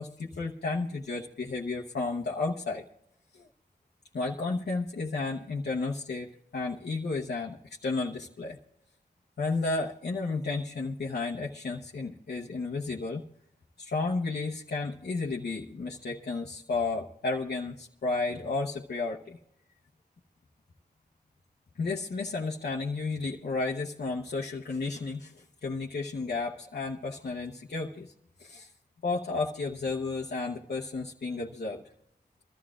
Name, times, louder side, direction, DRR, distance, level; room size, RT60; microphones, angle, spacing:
voice 1, 0.0-2.8 3.3-3.5 4.1-7.6 7.8-8.6 9.4-13.2 13.8-19.4 21.8-28.1 28.4-28.7 29.0-31.8, left 3 dB, 80° left, -2 dB, 1.0 m, -32 dB
25.0 x 13.5 x 2.4 m, 0.76 s
wide cardioid pair, 65°, 17 cm